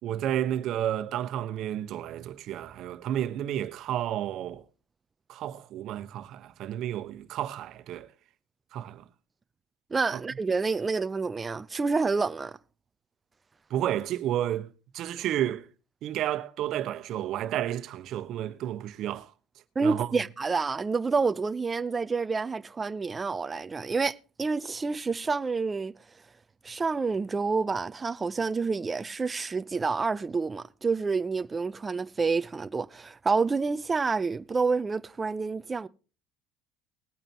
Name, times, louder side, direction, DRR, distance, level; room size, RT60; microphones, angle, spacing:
voice 1, 0.0-4.6 5.3-8.1 8.7-9.0 10.1-10.2 13.7-14.7 14.9-15.7 16.0-19.3 19.8-20.1, right 11 dB, 55° right, 1.2 m, -31 dB
voice 2, 9.9-12.6 19.8-25.9 26.6-35.9, right 4 dB, 20° right, 0.6 m, -28 dB
20.5 x 8.8 x 3.0 m
cardioid pair, 120°, 0 cm